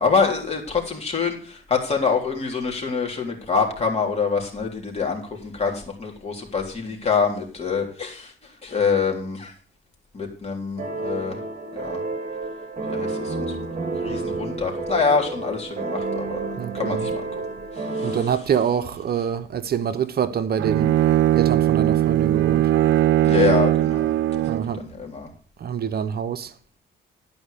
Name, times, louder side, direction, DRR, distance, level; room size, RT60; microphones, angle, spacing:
voice 1, 0.0-8.3 8.6-9.5 10.1-11.4 11.8-12.0 12.9-13.6 14.0-16.4 16.7-17.4 17.8-18.2 23.2-25.3, left 5 dB, 30° left, 3.5 m, -25 dB
sound 1, 10.8-18.2, right 3 dB, 35° right, 2.3 m, -30 dB
voice 2, 16.6-17.1 18.0-20.9 21.3-22.7 24.5-24.8 25.6-26.5, right 8 dB, 50° right, 0.8 m, -26 dB
Bowed string instrument, 20.6-24.8, right 13 dB, 80° right, 0.6 m, -19 dB
12.5 x 5.1 x 6.8 m
cardioid pair, 90°, 20 cm